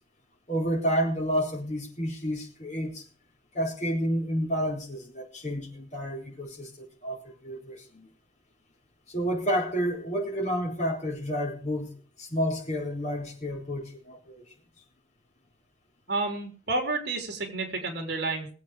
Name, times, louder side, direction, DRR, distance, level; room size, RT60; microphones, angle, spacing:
voice 1, 0.5-3.0 3.5-8.1 9.1-11.9 12.2-14.4, equal, 40° left, 0 dB, 4.2 m, -30 dB
voice 2, 16.1-18.5, right 3 dB, 60° right, 4 dB, 3.9 m, -30 dB
20.5 x 8.4 x 5.1 m, 0.40 s
head